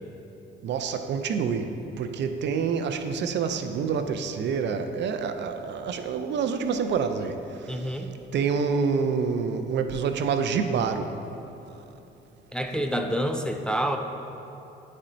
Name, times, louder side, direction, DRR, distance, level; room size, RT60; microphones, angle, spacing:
voice 1, 0.6-1.7 2.0-7.4 7.7-7.8 8.3-11.1, right 6 dB, 60° right, 8 dB, 0.4 m, -27 dB
voice 2, 7.7-8.1 12.5-14.0, equal, 5° left, 5 dB, 0.3 m, -27 dB
9.2 x 4.3 x 2.6 m, 2.9 s
cardioid pair, 90°, 20 cm